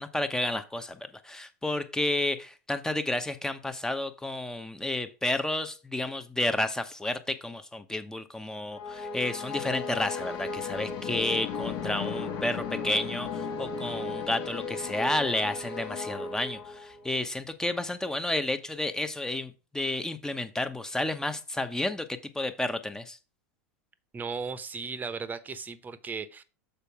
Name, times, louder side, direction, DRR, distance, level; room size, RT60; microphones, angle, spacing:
voice 1, 0.0-23.2, left 2 dB, 5° left, 10 dB, 0.9 m, -31 dB
sound 1, 8.7-17.1, left 5 dB, 50° left, 1.4 m, -35 dB
voice 2, 24.1-26.4, right 5 dB, 20° right, 13 dB, 0.9 m, -36 dB
6.9 x 4.5 x 5.9 m, 0.34 s
hypercardioid pair, 100°, 8 cm